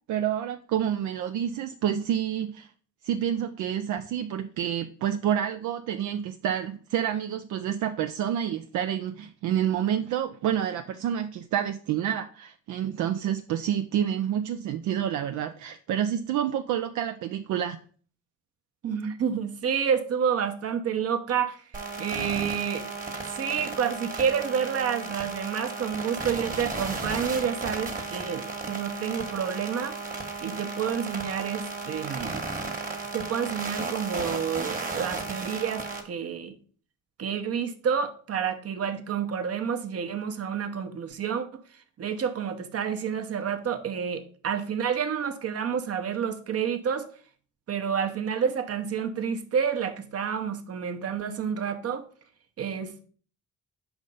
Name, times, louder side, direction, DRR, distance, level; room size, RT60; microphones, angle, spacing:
voice 1, 0.1-2.7 3.0-17.8, right 10 dB, 75° right, 0.5 m, -28 dB
voice 2, 18.8-21.6 22.0-22.9 23.2-30.0 30.4-32.4 33.1-36.6 37.2-41.6 42.0-47.1 47.7-52.1 52.6-53.1, right 7 dB, 50° right, 0.9 m, -29 dB
sound 1, 21.7-36.0, right 3 dB, 25° right, 1.3 m, -34 dB
5.3 x 3.5 x 5.3 m
cardioid pair, 90°, 30 cm